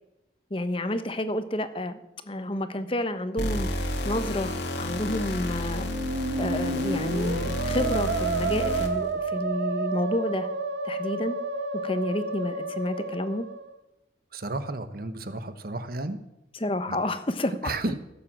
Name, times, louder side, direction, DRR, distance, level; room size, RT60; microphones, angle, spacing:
voice 1, 0.5-2.0 2.2-4.5 4.8-5.9 6.4-10.5 10.8-11.4 11.8-13.5 16.6-17.7, left 1 dB, 30° left, 10 dB, 1.0 m, -30 dB
sound 1, 3.4-9.1, left 1 dB, 65° left, 2.0 m, -31 dB
Musical instrument, 5.7-13.8, right 3 dB, 80° right, 1.3 m, -30 dB
voice 2, 14.3-16.2 16.9-17.0 17.6-17.9, right 2 dB, 50° right, 11 dB, 1.1 m, -32 dB
16.5 x 7.6 x 7.4 m, 0.93 s
head